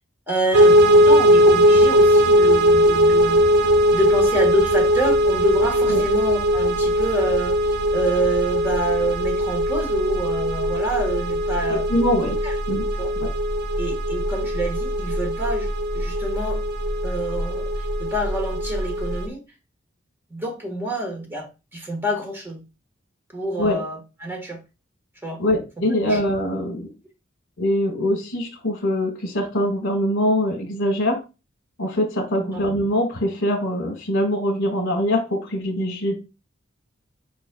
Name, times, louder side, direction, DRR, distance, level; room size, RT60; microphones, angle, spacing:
voice 1, 0.3-3.5 3.9-11.8 12.4-12.5 13.0-13.1 13.8-15.7 15.9-16.6 17.0-19.4 20.3-21.5 21.7-22.6 23.3-24.6 25.2-25.4 26.0-26.2 32.4-32.6, right 1 dB, 10° right, 1.2 m, -27 dB
sound 1, 0.5-19.3, equal, 55° right, 0.5 m, -19 dB
voice 2, 11.7-12.4 12.7-12.9 13.2-13.3 23.6-23.8 25.4-26.9 27.6-31.1 31.8-36.2, left 1 dB, 65° left, 1.1 m, -23 dB
5.0 x 4.0 x 2.2 m
head